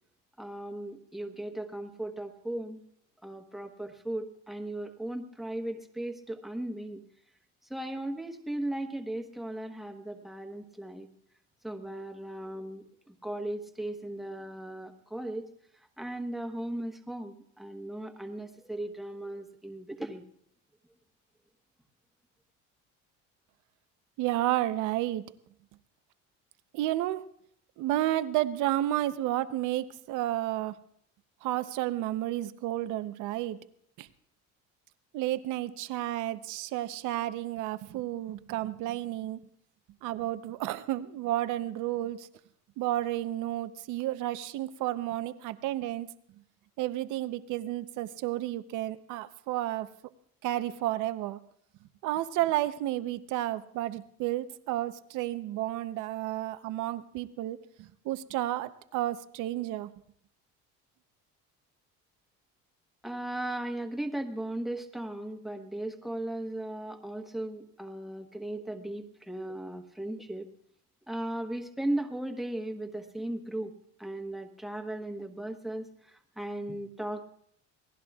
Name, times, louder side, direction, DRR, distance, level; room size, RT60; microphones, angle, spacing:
voice 1, 0.4-2.8 3.2-7.0 7.7-11.1 11.6-15.5 16.0-20.2 63.0-70.5 71.1-73.7 74.0-75.9 76.4-77.2, right 1 dB, ahead, 3 dB, 1.2 m, -37 dB
voice 2, 24.2-25.2 26.7-27.3 27.8-30.7 31.4-33.6 34.0-34.1 35.1-39.4 40.0-42.3 42.8-46.1 46.8-49.9 50.4-51.4 52.0-59.9, right 14 dB, 75° right, 12 dB, 0.8 m, -31 dB
27.5 x 19.0 x 2.4 m, 0.68 s
cardioid pair, 140°, 30 cm